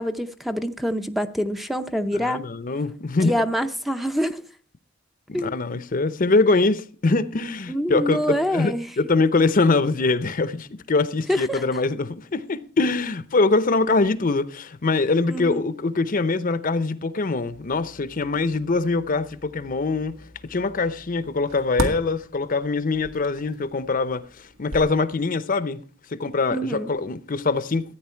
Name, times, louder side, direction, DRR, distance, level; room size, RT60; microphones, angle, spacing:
voice 1, 0.0-2.4 3.2-4.4 5.3-5.5 7.7-8.9 11.3-11.6 15.3-15.6 26.5-26.9, equal, ahead, 0.6 m, -26 dB
voice 2, 2.1-3.3 5.3-20.2 20.5-25.8 26.1-27.8, left 3 dB, 45° left, 0.7 m, -23 dB
sound 1, 17.4-25.4, right 1 dB, 80° right, 1.9 m, -37 dB
14.0 x 9.2 x 4.4 m
head